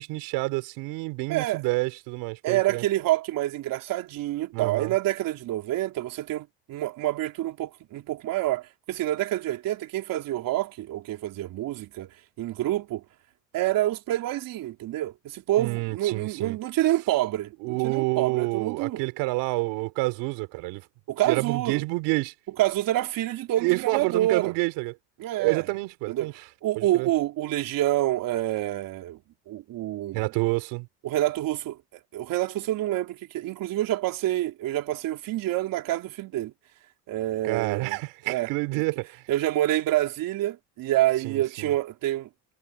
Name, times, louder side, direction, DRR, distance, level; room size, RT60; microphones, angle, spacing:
voice 1, 0.0-2.8 4.5-4.9 15.6-16.6 17.6-20.8 21.2-22.3 23.6-24.9 25.4-26.3 26.8-27.1 30.1-30.9 37.4-39.2 41.2-41.7, right 24 dB, 85° right, 5.2 m, -28 dB
voice 2, 1.3-1.6 2.4-12.1 12.4-13.0 13.5-19.0 21.1-21.8 22.6-24.5 25.2-25.7 26.1-26.3 26.6-29.2 29.5-30.2 31.0-36.5 37.1-38.0 38.3-38.8 39.3-42.3, right 15 dB, 65° right, 3.6 m, -27 dB
cardioid pair, 115°, 36 cm